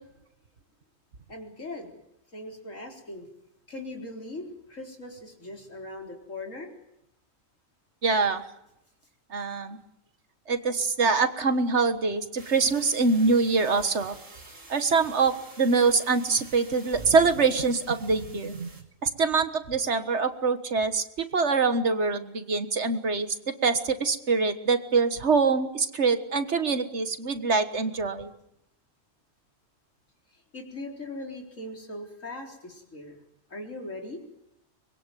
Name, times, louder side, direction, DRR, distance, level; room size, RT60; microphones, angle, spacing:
voice 1, 1.3-2.0 2.3-3.3 3.7-6.7 30.5-33.2 33.5-34.2, left 2 dB, 85° left, 1 dB, 4.5 m, -39 dB
voice 2, 8.0-8.4 9.3-9.8 10.5-14.2 14.7-18.7 19.0-23.3 23.6-28.3, right 4 dB, 60° right, 10 dB, 1.8 m, -24 dB
sound 1, 12.4-18.8, right 2 dB, 90° right, 4.1 m, -47 dB
24.0 x 21.5 x 9.2 m, 0.84 s
omnidirectional pair, 1.3 m